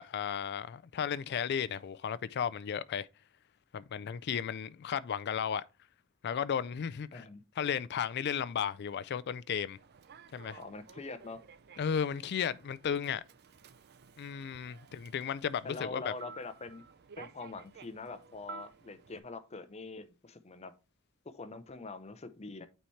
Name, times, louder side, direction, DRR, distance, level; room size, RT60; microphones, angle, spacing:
voice 1, 0.0-3.1 3.7-5.6 6.2-7.2 7.6-9.8 10.3-10.6 11.8-13.2 14.2-16.1, left 8 dB, 50° left, 0.4 m, -34 dB
voice 2, 7.1-7.4 10.6-11.4 15.6-16.8 17.2-20.7 21.2-22.7, left 3 dB, 30° left, 0.7 m, -44 dB
Human voice / Subway metro underground, 9.8-19.2, right 5 dB, 50° right, 0.5 m, -53 dB
8.9 x 4.2 x 3.1 m
head